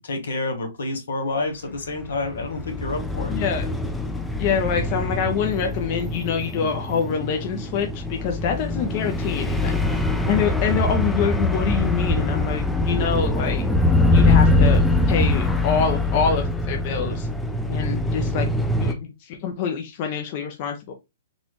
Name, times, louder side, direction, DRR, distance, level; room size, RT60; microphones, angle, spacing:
voice 1, 0.0-3.3, left 2 dB, 85° left, 4 dB, 1.2 m, -28 dB
sound 1, 2.0-18.9, left 2 dB, 5° left, 0.5 m, -23 dB
voice 2, 3.3-3.7 4.4-10.0 10.3-13.6 14.1-14.8 15.1-17.3 17.7-18.5 18.8-20.9, left 6 dB, 45° left, 4 dB, 0.6 m, -26 dB
4.0 x 2.5 x 3.0 m, 0.23 s
hypercardioid pair, 130°, 0 cm